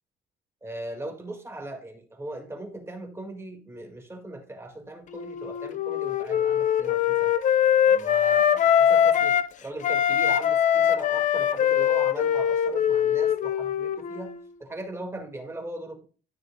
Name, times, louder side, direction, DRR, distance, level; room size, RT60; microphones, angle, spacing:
voice 1, 0.6-7.3 7.9-16.1, right 2 dB, 15° right, 1.9 m, -39 dB
Wind instrument woodwind instrument, 5.1-9.5 9.8-14.3, left 9 dB, 50° left, 0.6 m, -22 dB
12.5 x 6.2 x 2.3 m
cardioid pair, 110°, 17 cm